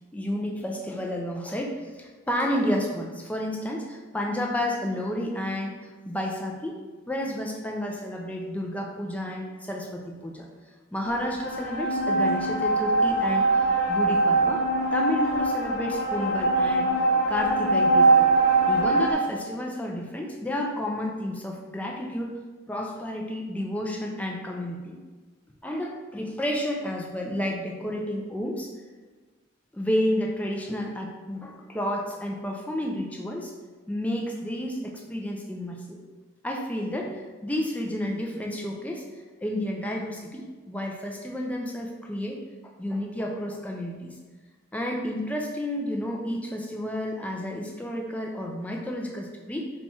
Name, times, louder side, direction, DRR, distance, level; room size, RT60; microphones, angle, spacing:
voice 1, 0.1-5.8 6.1-6.8 7.1-10.4 10.9-13.5 13.9-14.6 14.9-16.9 17.3-18.3 18.7-22.4 22.7-25.0 25.6-28.7 29.7-33.5 33.9-36.0 36.4-39.0 39.4-42.4 42.6-44.2 44.7-49.7, left 1 dB, 5° left, 0 dB, 0.3 m, -31 dB
sound 1, 11.1-19.1, right 2 dB, 50° left, 0.7 m, -22 dB
4.1 x 2.3 x 4.2 m, 1.3 s
head